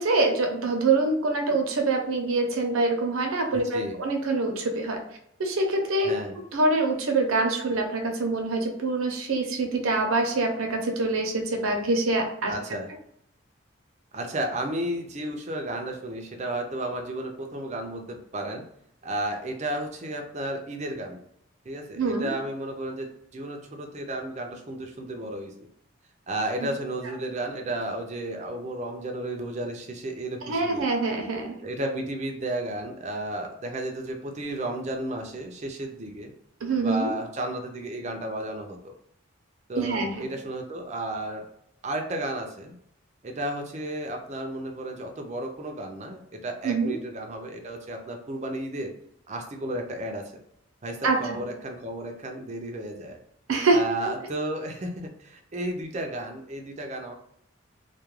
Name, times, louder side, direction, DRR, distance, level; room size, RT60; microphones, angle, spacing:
voice 1, 0.0-5.0 5.4-6.1 6.5-12.5 22.0-22.3 30.5-31.6 36.6-37.1 39.7-40.3 46.6-46.9 51.0-51.2 53.5-53.8, right 3 dB, 85° right, 3 dB, 0.6 m, -25 dB
voice 2, 3.5-4.0 6.0-6.4 12.5-12.9 14.1-18.6 19.0-21.2 21.7-25.5 26.3-30.9 31.6-36.3 36.8-38.9 39.7-41.5 41.8-42.7 43.2-48.9 49.3-50.2 50.8-53.2 53.7-57.1, right 1 dB, 35° right, 3 dB, 0.4 m, -33 dB
2.3 x 2.1 x 3.0 m, 0.74 s
head